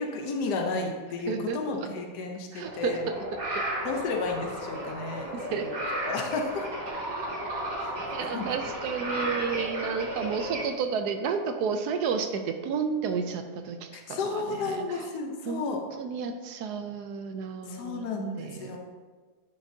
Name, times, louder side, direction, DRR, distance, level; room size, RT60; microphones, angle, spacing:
voice 1, 0.0-3.1 3.8-5.7 6.0-6.6 7.8-7.9 8.3-8.5 13.9-15.8 17.6-18.8, left 3 dB, 80° left, 2 dB, 1.4 m, -32 dB
voice 2, 1.3-1.6 2.5-3.7 5.3-5.6 8.1-15.1 15.5-15.7 16.0-18.1 18.4-18.8, right 6 dB, 80° right, 7 dB, 1.1 m, -32 dB
sound 1, 2.6-10.6, right 1 dB, 60° right, 2.1 m, -34 dB
9.8 x 6.2 x 2.7 m, 1.4 s
omnidirectional pair, 1.7 m